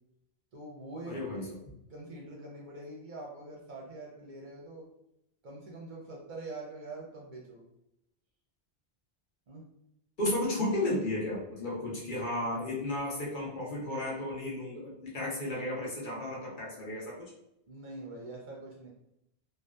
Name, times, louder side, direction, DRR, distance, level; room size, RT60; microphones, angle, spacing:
voice 1, 0.5-1.2 1.9-4.9 5.4-7.6 9.5-9.6 12.1-12.7 17.7-18.9, right 2 dB, 55° right, -3 dB, 0.6 m, -44 dB
voice 2, 1.1-1.8 10.2-17.3, left 1 dB, 55° left, -4 dB, 0.8 m, -33 dB
2.6 x 2.2 x 2.2 m, 0.83 s
omnidirectional pair, 1.1 m